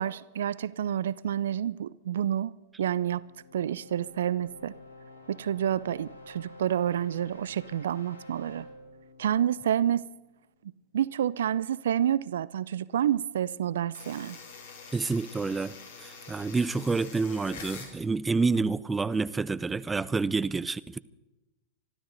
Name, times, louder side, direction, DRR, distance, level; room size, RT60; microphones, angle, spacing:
voice 1, 0.0-3.3 3.5-4.7 5.3-8.7 9.2-10.1 10.9-14.4, right 10 dB, 70° right, 0.4 m, -29 dB
sound 1, 2.7-10.5, left 1 dB, 85° left, 3.1 m, -50 dB
sound 2, 13.9-17.9, left 5 dB, 60° left, 3.8 m, -45 dB
voice 2, 14.9-21.0, right 4 dB, 15° right, 0.6 m, -28 dB
25.5 x 13.0 x 3.9 m
figure-of-eight pair, 95°, 0 cm